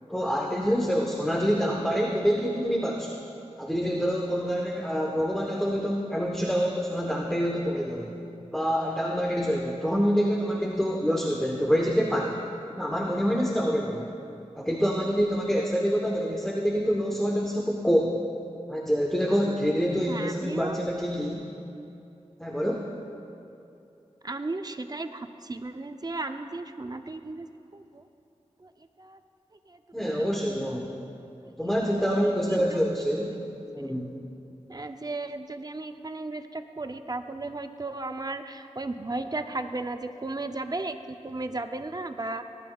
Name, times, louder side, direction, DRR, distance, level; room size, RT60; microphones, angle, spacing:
voice 1, 0.1-3.2 3.6-8.1 8.5-12.4 12.8-14.1 14.5-18.2 18.7-21.5 22.4-22.9 29.9-30.9 31.6-33.3 33.7-34.1, equal, 5° left, -1 dB, 0.9 m, -26 dB
voice 2, 19.9-20.8 24.2-27.5 27.7-28.1 28.6-28.7 29.0-29.2 29.7-30.3 30.6-31.0 32.5-32.8 33.8-34.0 34.7-42.4, right 2 dB, 35° right, 8 dB, 0.5 m, -35 dB
18.0 x 11.5 x 2.3 m, 2.7 s
wide cardioid pair, 65°, 12 cm